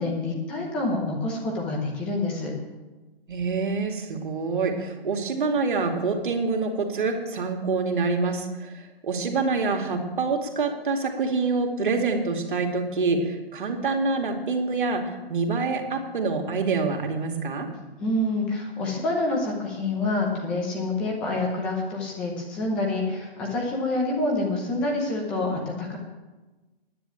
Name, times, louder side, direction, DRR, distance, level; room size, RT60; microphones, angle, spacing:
voice 1, 0.0-2.5 18.0-26.0, left 2 dB, 5° left, -1 dB, 0.6 m, -27 dB
voice 2, 3.3-17.7, right 4 dB, 55° right, 3 dB, 2.5 m, -26 dB
10.0 x 9.5 x 9.2 m, 1.2 s
hypercardioid pair, 170°, 31 cm